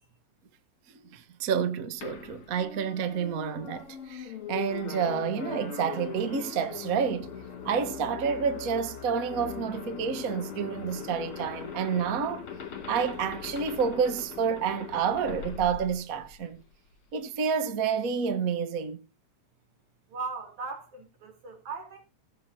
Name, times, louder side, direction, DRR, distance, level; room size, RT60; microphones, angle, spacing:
voice 1, 1.1-7.3 7.6-12.4 12.9-16.6 17.1-19.0, right 6 dB, 55° right, 1.0 m, -29 dB
sound 1, 2.0-16.6, left 7 dB, 55° left, 3.1 m, -40 dB
voice 2, 20.1-22.0, right 4 dB, 85° right, 5.1 m, -38 dB
20.5 x 7.7 x 2.8 m
omnidirectional pair, 3.4 m